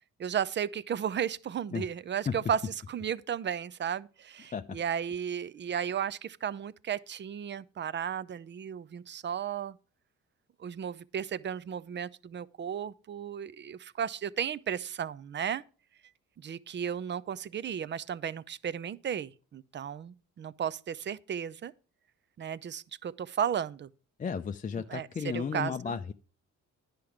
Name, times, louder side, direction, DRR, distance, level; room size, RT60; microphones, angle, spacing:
voice 1, 0.2-2.6 2.9-9.8 10.6-15.6 16.4-21.7 22.4-23.9 24.9-26.0, right 8 dB, 40° right, 0.5 m, -34 dB
voice 2, 24.2-26.1, left 6 dB, 25° left, 0.5 m, -34 dB
10.0 x 5.9 x 4.9 m
cardioid pair, 90°, 30 cm